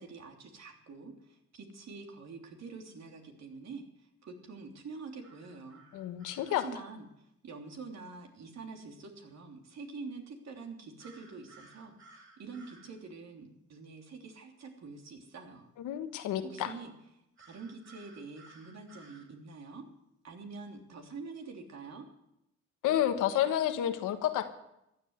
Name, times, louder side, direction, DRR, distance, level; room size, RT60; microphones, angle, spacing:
voice 1, 0.0-5.8 6.5-7.1 7.4-12.0 12.4-15.7 16.4-16.9 17.5-19.9 20.2-22.1, right 4 dB, 60° right, 3 dB, 3.2 m, -46 dB
sound 1, 5.2-6.6 11.0-12.9 17.4-19.3, right 3 dB, 40° right, 7.2 m, -57 dB
voice 2, 5.9-6.6 15.8-16.7 22.8-24.6, left 11 dB, 90° left, 8 dB, 1.5 m, -30 dB
15.0 x 11.0 x 8.0 m, 0.84 s
cardioid pair, 90°, 30 cm